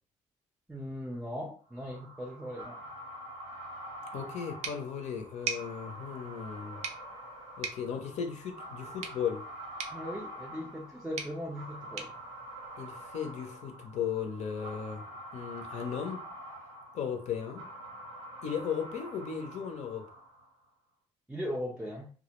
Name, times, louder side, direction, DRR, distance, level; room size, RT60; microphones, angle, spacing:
voice 1, 0.7-2.8 9.9-12.1 21.3-22.1, equal, 5° right, 0.4 m, -38 dB
sound 1, 1.7-20.6, right 1 dB, 80° right, 0.9 m, -46 dB
voice 2, 4.1-6.8 7.6-9.5 12.8-15.1 15.3-16.2 16.9-17.7 18.4-20.1, left 7 dB, 60° left, 0.5 m, -36 dB
sound 2, 4.6-13.3, right 6 dB, 60° right, 0.5 m, -44 dB
2.1 x 2.0 x 2.9 m
cardioid pair, 85°, 13 cm